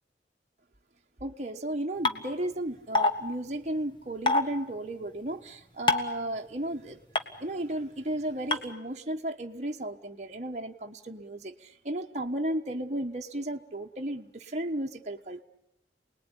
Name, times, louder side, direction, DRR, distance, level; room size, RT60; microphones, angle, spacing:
voice 1, 1.2-7.0 7.4-15.4, right 1 dB, 40° right, 2 dB, 1.4 m, -34 dB
sound 1, 2.0-2.1 2.9-3.1 4.3-4.4 5.9-6.1 7.1-7.2 8.5-8.6, left 3 dB, 25° left, 1.6 m, -22 dB
29.0 x 20.0 x 10.0 m, 0.82 s
head